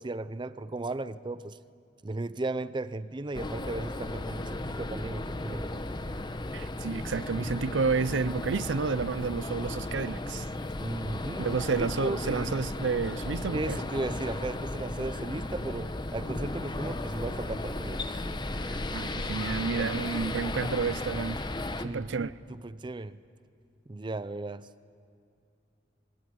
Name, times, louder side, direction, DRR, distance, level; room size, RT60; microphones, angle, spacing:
voice 1, 0.0-1.6 2.0-5.8 10.8-11.5 12.0-12.5 13.5-18.0 21.8-22.3 22.6-23.2 23.9-24.7, right 2 dB, 25° right, 0.5 m, -35 dB
sound 1, 3.3-21.9, left 2 dB, 25° left, 1.0 m, -35 dB
voice 2, 6.5-10.5 11.4-13.8 18.6-21.4 21.8-22.3, right 5 dB, 90° right, 0.6 m, -30 dB
25.5 x 22.0 x 9.5 m
head